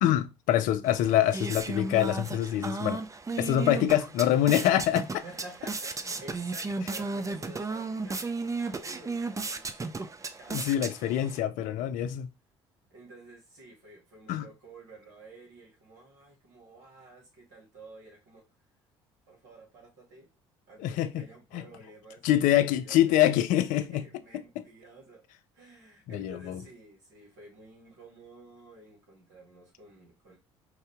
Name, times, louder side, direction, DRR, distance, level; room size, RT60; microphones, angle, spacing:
voice 1, 0.0-3.0 3.4-5.2 10.5-12.3 14.3-14.5 20.8-21.3 21.5-21.7 22.2-24.0 26.1-26.6, left 12 dB, 65° left, 0.5 m, -25 dB
sound 1, 0.8-11.4, right 3 dB, 20° right, 0.6 m, -35 dB
voice 2, 5.2-8.2 8.6-11.4 12.9-18.4 19.3-20.3 20.7-23.2 23.7-25.2 25.5-30.4, right 2 dB, 70° right, 2.6 m, -51 dB
4.8 x 2.7 x 3.4 m
hypercardioid pair, 55°, 15 cm